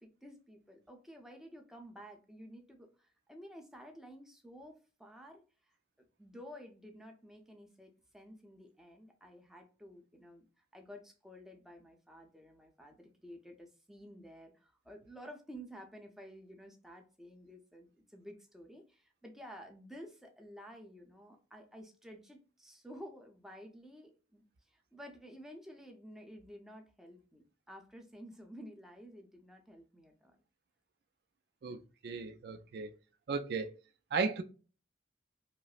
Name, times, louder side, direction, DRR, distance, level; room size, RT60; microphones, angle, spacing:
voice 1, 0.0-30.4, equal, ahead, 0.7 m, -52 dB
voice 2, 31.6-33.0 33.3-33.7 34.1-34.4, right 4 dB, 60° right, 0.4 m, -35 dB
5.1 x 2.0 x 2.4 m
head